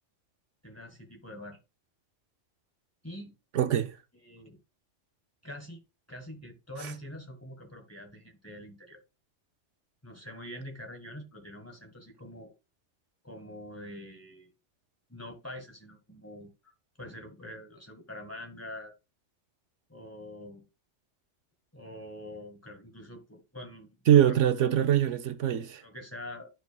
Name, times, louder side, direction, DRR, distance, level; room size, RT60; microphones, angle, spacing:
voice 1, 0.6-1.6 3.0-3.4 4.2-4.6 5.4-5.8 6.1-9.0 10.0-12.5 13.2-14.5 15.1-18.9 19.9-20.6 21.7-24.4 25.8-26.5, left 1 dB, 10° left, 1.6 m, -45 dB
voice 2, 3.6-4.0 24.1-25.8, right 11 dB, 85° right, 1.1 m, -23 dB
12.0 x 4.7 x 2.3 m
omnidirectional pair, 1.2 m